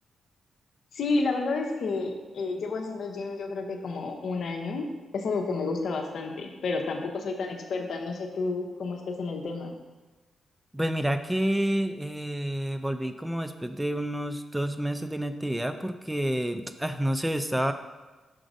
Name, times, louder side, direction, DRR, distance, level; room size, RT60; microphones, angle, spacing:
voice 1, 0.9-4.9 5.1-9.8, left 3 dB, 70° left, 3 dB, 0.9 m, -30 dB
voice 2, 10.7-17.7, right 1 dB, 10° right, 9 dB, 0.4 m, -29 dB
6.3 x 3.9 x 4.9 m, 1.2 s
supercardioid pair, 50°, 0 cm